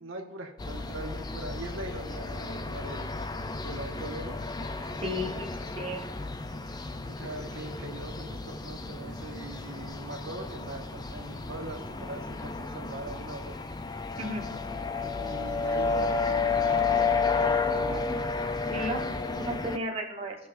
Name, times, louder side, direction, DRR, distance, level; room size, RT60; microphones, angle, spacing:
voice 1, 0.0-3.1 3.6-4.4 7.0-13.6 15.0-18.2, right 2 dB, 90° right, 1 dB, 1.4 m, -41 dB
sound 1, 0.6-19.8, left 4 dB, 20° left, 0.5 m, -32 dB
voice 2, 5.0-6.0 14.2-14.4 18.7-19.1 19.4-20.4, equal, 30° right, -1 dB, 1.4 m, -34 dB
17.5 x 5.9 x 2.6 m, 0.78 s
head